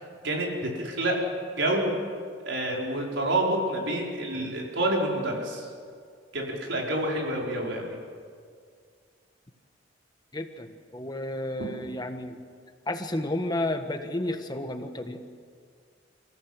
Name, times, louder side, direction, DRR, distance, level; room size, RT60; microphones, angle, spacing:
voice 1, 0.2-1.2 1.6-1.9 2.4-5.7 6.3-7.9, right 1 dB, 70° right, -1 dB, 5.0 m, -28 dB
voice 2, 10.3-12.4 12.9-15.2, left 1 dB, 20° left, 7 dB, 1.4 m, -32 dB
30.0 x 15.0 x 8.1 m, 2.1 s
head